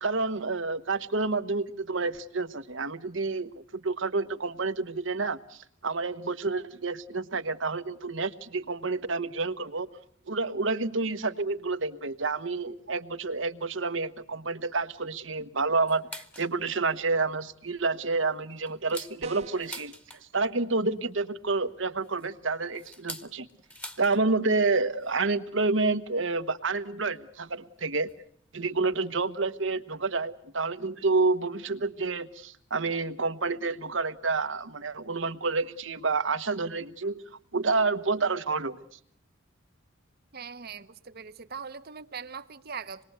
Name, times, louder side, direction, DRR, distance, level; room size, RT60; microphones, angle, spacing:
voice 1, 0.0-9.9 10.3-19.9 20.3-23.5 24.0-28.1 28.5-37.2 37.5-38.8, right 3 dB, 70° right, 1.3 m, -29 dB
sound 1, 15.9-16.6 17.0-17.1 17.5-17.7 18.2-20.5 21.7-24.2 24.5-24.6 24.9-25.2 26.2-26.3 27.1-27.2 28.1-28.3 28.6-28.7 28.9-29.0, left 1 dB, 10° left, 1.4 m, -45 dB
sound 2, 19.2-19.8, right 4 dB, 35° right, 1.3 m, -44 dB
voice 2, 40.3-43.0, right 6 dB, 50° right, 1.1 m, -41 dB
26.5 x 21.0 x 8.1 m
head